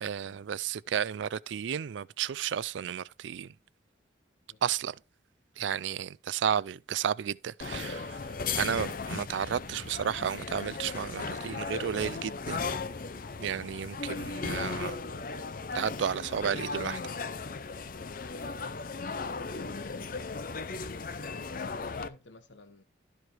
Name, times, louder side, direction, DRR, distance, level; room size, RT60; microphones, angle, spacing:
voice 1, 0.0-3.5 4.6-5.0 5.6-12.7 13.4-15.0 15.7-17.0, right 8 dB, 75° right, 0.4 m, -32 dB
sound 1, 7.6-22.1, left 4 dB, 45° left, 0.6 m, -36 dB
voice 2, 18.6-19.1 20.9-22.8, left 2 dB, 75° left, 0.8 m, -52 dB
12.5 x 4.8 x 4.4 m
head